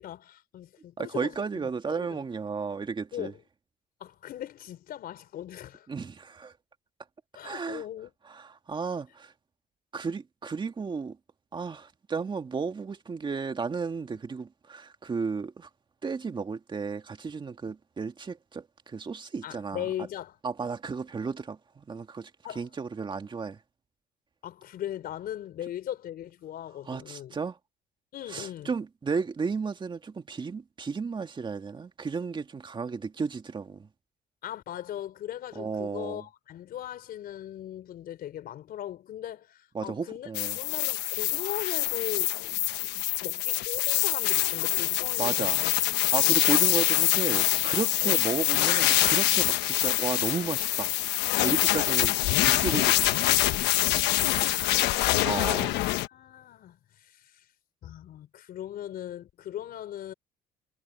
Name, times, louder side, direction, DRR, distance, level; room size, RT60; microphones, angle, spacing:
voice 1, 0.0-2.2 3.1-3.4 4.0-5.9 7.3-8.1 19.4-20.4 22.4-22.7 24.4-27.4 28.1-28.7 34.4-42.4 43.2-45.7 48.0-48.2 54.3-55.7 56.1-57.4 57.8-60.1, left 11 dB, 65° left, 4.4 m, -39 dB
voice 2, 1.0-3.3 5.9-6.5 7.4-7.8 8.3-9.3 9.9-11.2 11.5-15.7 16.0-19.9 20.4-22.3 22.6-23.6 26.9-27.6 28.3-33.9 35.6-36.2 39.7-40.6 45.2-45.6 46.1-50.9 51.4-52.2 52.4-53.4 55.2-55.8, right 5 dB, 30° right, 2.2 m, -33 dB
sound 1, 40.3-56.1, left 17 dB, 90° left, 1.1 m, -25 dB
cardioid pair, 110°, 17 cm